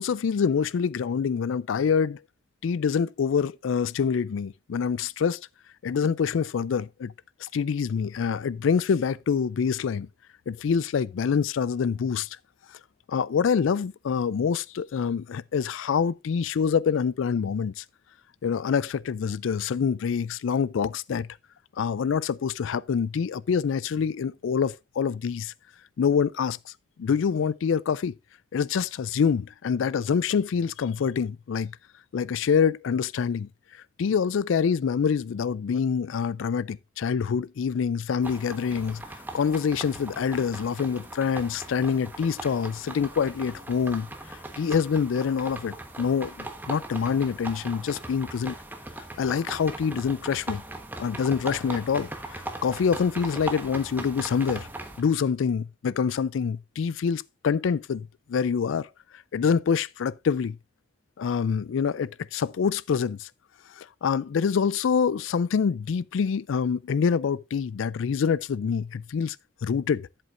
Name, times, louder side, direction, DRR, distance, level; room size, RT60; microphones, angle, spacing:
voice 1, 0.0-2.2 2.6-5.4 5.8-7.1 7.4-10.1 10.5-12.3 13.1-17.8 18.4-21.3 21.8-25.5 26.0-26.7 27.0-28.1 28.5-31.8 32.1-33.5 34.0-39.0 39.3-48.5 49.2-50.6 51.0-54.7 55.0-58.9 59.1-60.6 61.2-63.3 63.7-69.4 69.6-70.1, left 6 dB, 90° left, 0.4 m, -26 dB
sound 1, 38.2-55.0, right 2 dB, 10° right, 1.2 m, -39 dB
12.5 x 7.7 x 2.5 m
head